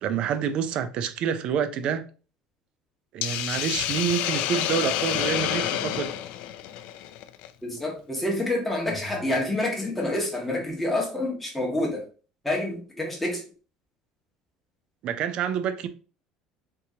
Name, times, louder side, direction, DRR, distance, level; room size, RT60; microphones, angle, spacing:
voice 1, 0.0-2.0 3.1-6.1 15.0-15.9, right 8 dB, 55° right, 0.4 m, -27 dB
Hiss, 3.2-7.5, left 12 dB, 70° left, 0.3 m, -28 dB
voice 2, 7.6-12.1 12.4-13.4, left 1 dB, 5° left, 1.2 m, -28 dB
3.7 x 2.8 x 2.7 m
cardioid pair, 135°, 2 cm